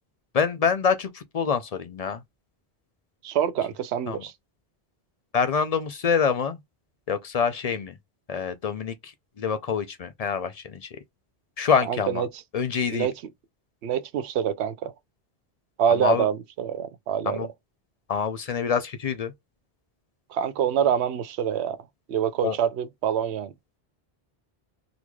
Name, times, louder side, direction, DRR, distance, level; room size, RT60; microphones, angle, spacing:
voice 1, 0.3-2.2 4.1-4.2 5.3-6.6 7.1-7.9 8.3-9.1 9.4-10.9 11.6-12.2 12.5-13.1 16.0-16.3 17.3-17.5 18.1-19.3 22.4-22.6, left 6 dB, 50° left, 0.5 m, -26 dB
voice 2, 3.2-4.3 11.8-12.3 12.9-13.1 13.8-14.9 15.8-17.5 20.3-21.8 22.1-23.5, right 9 dB, 85° right, 0.9 m, -26 dB
3.8 x 3.1 x 2.3 m
omnidirectional pair, 1.1 m